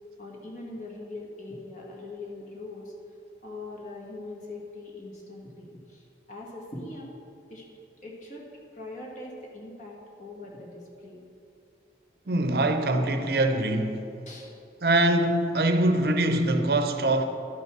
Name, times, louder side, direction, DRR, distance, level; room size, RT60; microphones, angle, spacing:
voice 1, 0.2-2.9 3.4-7.1 7.5-7.7 8.0-8.5 8.7-11.2 14.2-14.5, left 2 dB, 45° left, 1.7 m, -41 dB
voice 2, 12.3-14.1 14.8-17.2, right 1 dB, 60° right, 0.7 m, -23 dB
12.0 x 5.4 x 6.0 m
head